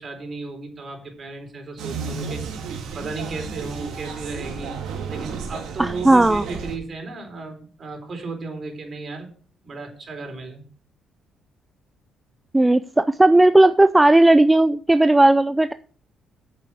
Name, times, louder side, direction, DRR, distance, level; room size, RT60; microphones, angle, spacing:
voice 1, 0.0-2.4 2.9-4.8 5.1-9.3 9.6-10.6, right 3 dB, 45° right, 4 dB, 3.9 m, -34 dB
sound 1, 1.8-6.8, right 5 dB, 85° right, 2.0 m, -32 dB
voice 2, 5.8-6.4 12.5-15.7, right 2 dB, 15° right, 12 dB, 0.4 m, -15 dB
8.4 x 6.9 x 6.2 m, 0.43 s
cardioid pair, 90°, 0 cm